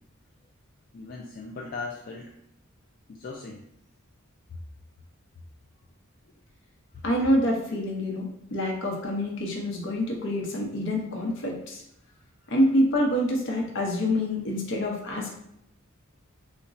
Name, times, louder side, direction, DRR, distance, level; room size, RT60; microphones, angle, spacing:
voice 1, 0.9-2.3 3.1-3.6 12.4-12.5, left 3 dB, 40° left, -2 dB, 0.3 m, -38 dB
voice 2, 7.0-11.8 12.5-15.3, equal, 60° left, -1 dB, 0.7 m, -26 dB
3.8 x 2.2 x 2.5 m, 0.77 s
head